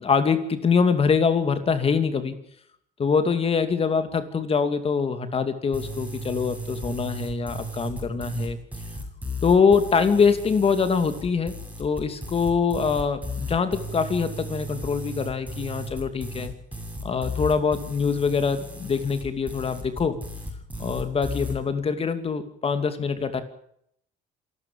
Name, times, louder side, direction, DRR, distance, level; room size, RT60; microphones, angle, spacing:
voice 1, 0.0-2.4 3.0-8.6 9.4-11.5 11.8-16.5 17.0-20.2 20.8-23.4, left 5 dB, 35° left, 9 dB, 2.7 m, -24 dB
sound 1, 5.7-21.6, left 1 dB, 10° right, 7.9 m, -35 dB
27.5 x 13.0 x 8.8 m, 0.71 s
cardioid pair, 110°, 17 cm